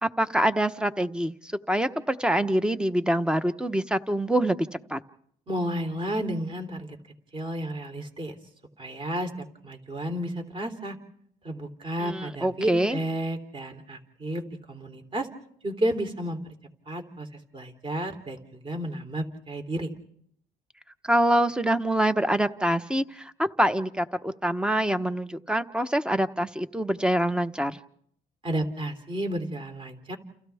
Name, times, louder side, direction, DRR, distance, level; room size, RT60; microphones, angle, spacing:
voice 1, 0.0-4.6 4.9-5.0 12.0-13.0 21.0-27.8, right 1 dB, 5° right, 11 dB, 1.0 m, -25 dB
voice 2, 5.5-7.0 7.3-8.3 8.8-11.0 11.4-14.4 14.7-15.3 15.6-16.4 16.9-17.3 17.5-19.9 28.4-30.2, right 1 dB, 30° right, 5 dB, 3.3 m, -32 dB
29.5 x 29.5 x 3.5 m, 0.68 s
cardioid pair, 110°, 17 cm